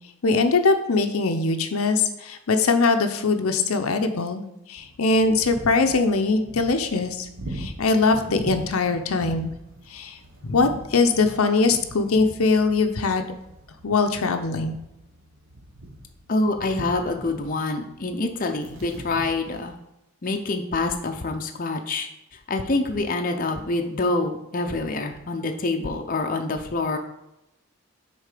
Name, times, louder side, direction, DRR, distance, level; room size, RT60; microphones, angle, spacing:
voice 1, 0.2-9.5 9.9-10.2 10.4-13.3 13.8-14.7, left 3 dB, 75° left, 7 dB, 0.7 m, -22 dB
sound 1, 4.8-19.6, right 1 dB, 60° right, 1.2 m, -41 dB
voice 2, 16.3-19.7 20.2-22.1 22.5-27.0, left 2 dB, 40° left, 4 dB, 0.6 m, -26 dB
6.6 x 4.3 x 4.9 m, 0.88 s
head